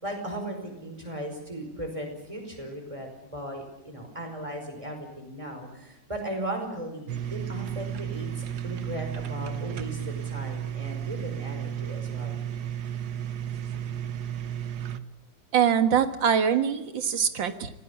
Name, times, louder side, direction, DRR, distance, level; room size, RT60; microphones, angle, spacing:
voice 1, 0.0-12.4, right 1 dB, 15° right, 4 dB, 5.3 m, -37 dB
sound 1, 7.1-15.0, right 9 dB, 60° right, 1.5 m, -33 dB
voice 2, 15.5-17.7, right 8 dB, 80° right, 9 dB, 2.3 m, -23 dB
25.5 x 18.0 x 8.4 m, 0.91 s
omnidirectional pair, 2.0 m